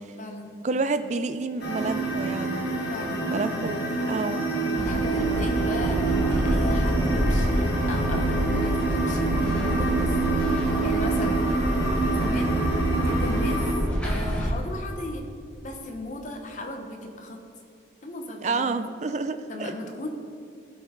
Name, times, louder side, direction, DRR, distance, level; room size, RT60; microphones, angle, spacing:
voice 1, 0.0-0.5 2.9-3.5 4.6-10.1 10.6-11.4 12.1-12.6 13.0-13.6 14.0-15.2 15.6-17.4 18.0-18.8 19.5-20.1, left 1 dB, 40° left, 3 dB, 0.9 m, -36 dB
voice 2, 0.6-2.6 3.3-3.8 4.1-4.5 18.4-19.7, right 3 dB, 40° right, 10 dB, 0.4 m, -29 dB
sound 1, 1.6-13.7, right 3 dB, 60° left, 1.6 m, -27 dB
sound 2, 4.8-14.5, equal, 5° left, 0.9 m, -27 dB
14.0 x 5.4 x 3.7 m, 2.6 s
head